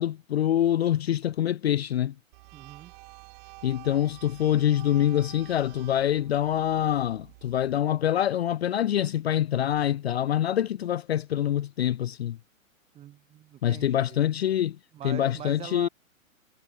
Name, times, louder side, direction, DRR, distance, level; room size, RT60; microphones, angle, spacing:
voice 1, 0.0-2.1 3.6-12.4 13.6-14.8 15.0-15.9, left 11 dB, 50° left, 0.6 m, -25 dB
sound 1, 2.3-7.8, right 30 dB, 30° right, 1.5 m, -49 dB
voice 2, 2.5-2.9 12.9-14.2 14.9-15.9, right 12 dB, 15° right, 1.0 m, -42 dB
figure-of-eight pair, 115°, 41 cm